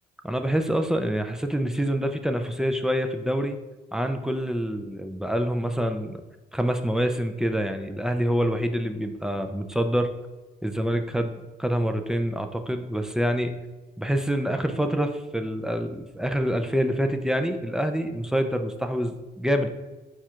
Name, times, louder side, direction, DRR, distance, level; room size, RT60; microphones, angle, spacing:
voice 1, 0.2-3.6 3.9-6.2 6.5-10.1 10.6-13.5 14.0-19.7, equal, 5° right, 6 dB, 0.4 m, -26 dB
4.7 x 2.4 x 4.4 m, 1.2 s
supercardioid pair, 70°, 17 cm